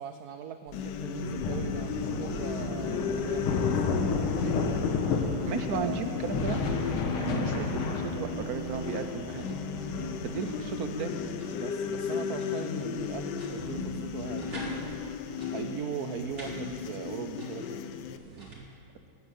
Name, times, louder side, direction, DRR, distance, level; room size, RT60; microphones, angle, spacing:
voice 1, 0.0-4.6 5.7-6.1 11.5-14.9 15.5-17.8 18.2-18.6, right 8 dB, 80° right, 9 dB, 0.8 m, -40 dB
sound 1, 0.7-18.2, left 7 dB, 70° left, 1.1 m, -35 dB
sound 2, 0.7-18.5, right 2 dB, 30° right, 2.8 m, -43 dB
sound 3, 1.4-8.1, left 4 dB, 90° left, 2.1 m, -31 dB
voice 2, 5.5-6.6 7.1-9.6 10.2-11.1, right 6 dB, 60° right, 8 dB, 1.1 m, -34 dB
13.0 x 10.0 x 8.2 m, 2.5 s
omnidirectional pair, 2.3 m